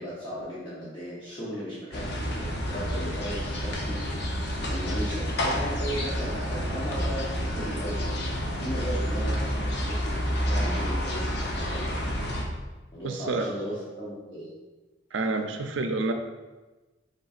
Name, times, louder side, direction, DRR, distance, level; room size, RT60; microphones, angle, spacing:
voice 1, 0.0-4.2 4.7-8.1 8.6-12.1 12.9-14.5, equal, 25° left, -10 dB, 0.9 m, -36 dB
sound 1, 1.9-12.4, equal, 60° left, 0.7 m, -29 dB
voice 2, 13.0-13.5 15.1-16.1, right 3 dB, 80° right, 6 dB, 0.5 m, -28 dB
5.4 x 3.7 x 2.4 m, 1.2 s
head